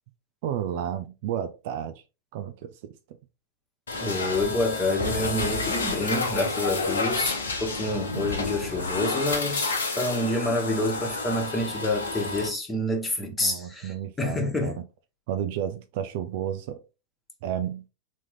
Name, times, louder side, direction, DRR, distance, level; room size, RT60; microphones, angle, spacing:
voice 1, 0.4-1.9 2.3-2.9 13.4-14.7 15.3-16.8 17.4-17.8, right 10 dB, 50° right, 0.5 m, -32 dB
sound 1, 3.9-12.5, left 3 dB, 70° left, 0.9 m, -29 dB
voice 2, 3.9-14.8, left 1 dB, 15° left, 1.3 m, -28 dB
4.2 x 3.0 x 3.8 m
figure-of-eight pair, 90°, 0 cm